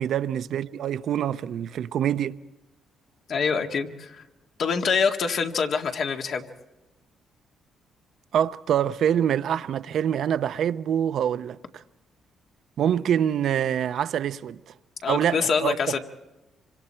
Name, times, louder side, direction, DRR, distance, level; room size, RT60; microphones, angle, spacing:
voice 1, 0.0-2.4 8.3-11.8 12.8-14.6 15.1-16.0, right 9 dB, 70° right, 0.6 m, -25 dB
voice 2, 3.3-4.2 4.6-6.4 15.0-16.0, left 5 dB, 60° left, 1.8 m, -25 dB
27.0 x 25.0 x 4.4 m
cardioid pair, 90°, 0 cm